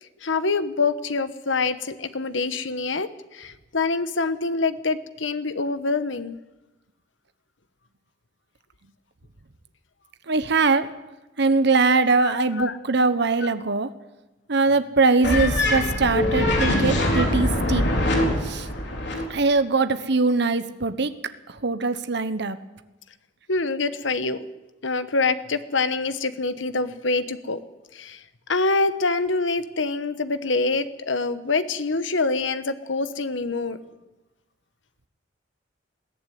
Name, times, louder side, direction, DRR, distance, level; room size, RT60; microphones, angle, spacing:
voice 1, 0.2-6.4 12.2-12.8 23.5-24.4 24.8-27.6 27.9-28.2 28.5-33.8, left 3 dB, 90° left, 12 dB, 1.2 m, -25 dB
voice 2, 10.3-10.9 11.4-13.9 14.5-17.8 18.4-18.7 19.3-21.1 21.6-22.6, right 3 dB, 65° right, 11 dB, 1.1 m, -21 dB
sound 1, 15.2-19.2, left 1 dB, 65° left, 4.1 m, -23 dB
21.0 x 15.0 x 9.4 m, 1.1 s
head